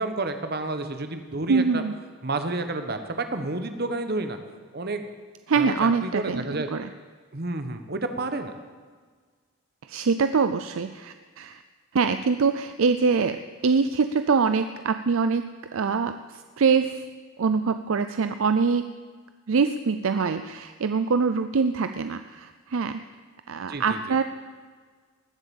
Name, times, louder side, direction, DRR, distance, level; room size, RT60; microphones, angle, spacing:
voice 1, 0.0-1.8 2.2-4.4 4.7-5.0 5.6-6.7 7.3-8.5 23.7-24.0, right 2 dB, 45° right, 8 dB, 1.2 m, -30 dB
voice 2, 1.5-1.9 5.5-6.9 9.9-11.6 11.9-17.0 17.4-18.8 19.5-23.0 23.5-24.2, right 5 dB, 65° right, 9 dB, 0.5 m, -24 dB
19.5 x 7.8 x 7.1 m, 1.5 s
head